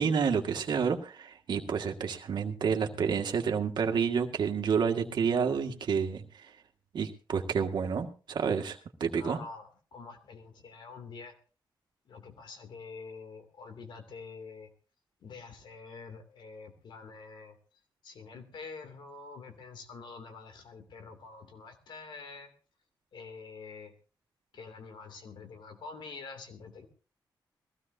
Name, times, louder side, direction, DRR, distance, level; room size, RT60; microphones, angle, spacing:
voice 1, 0.0-6.2 6.9-9.4, right 6 dB, 70° right, 4 dB, 1.8 m, -29 dB
voice 2, 9.2-11.3 12.1-14.7 15.2-17.6 18.0-22.5 23.1-23.9 24.5-26.9, left 4 dB, 80° left, 6 dB, 2.7 m, -46 dB
21.0 x 16.0 x 2.8 m, 0.36 s
cardioid pair, 100°, 8 cm